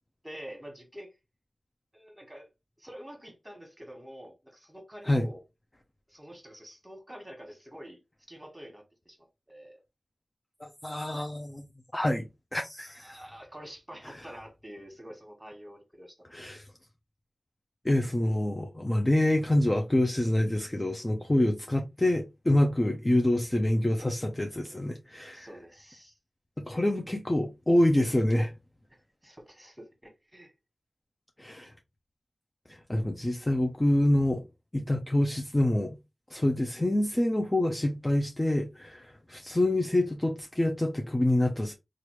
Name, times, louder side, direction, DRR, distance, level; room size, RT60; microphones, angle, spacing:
voice 1, 0.2-1.1 1.9-2.5 2.8-5.4 6.1-8.0 8.3-9.8 12.9-16.5 25.3-26.2 28.9-30.5 31.6-31.7, equal, 15° right, 1.5 m, -47 dB
voice 2, 10.6-11.7 11.9-12.3 12.5-13.2 16.3-16.6 17.8-25.5 26.6-28.5 31.4-31.7 32.7-34.4 34.7-36.0 36.3-41.7, left 1 dB, 20° left, 0.6 m, -26 dB
3.0 x 2.5 x 3.1 m
cardioid pair, 40°, 0 cm